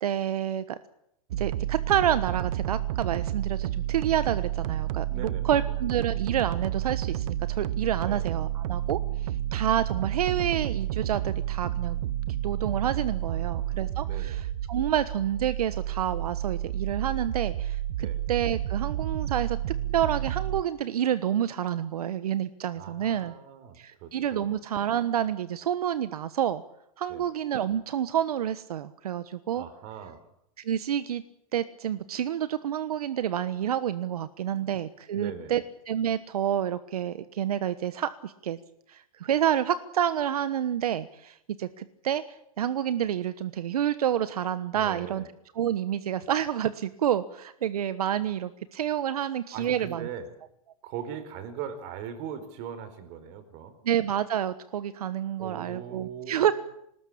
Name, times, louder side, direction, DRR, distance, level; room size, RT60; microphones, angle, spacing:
voice 1, 0.0-0.8 1.4-12.0 12.4-19.6 19.9-23.3 23.8-26.6 27.0-29.6 30.6-31.2 31.5-38.6 38.9-42.2 42.6-45.2 45.5-50.1 53.8-56.5, right 10 dB, 85° right, 13 dB, 1.2 m, -29 dB
sound 1, 1.3-20.6, right 12 dB, 65° right, 0.8 m, -30 dB
voice 2, 5.1-5.6 7.9-8.3 13.3-14.4 18.0-18.2 22.7-24.5 27.1-27.2 29.5-30.2 34.5-34.7 35.1-35.6 44.7-45.3 49.5-50.3 50.8-53.8 55.4-56.5, right 8 dB, 45° right, 11 dB, 4.5 m, -40 dB
21.5 x 19.5 x 8.7 m, 0.77 s
hypercardioid pair, 140°, 19 cm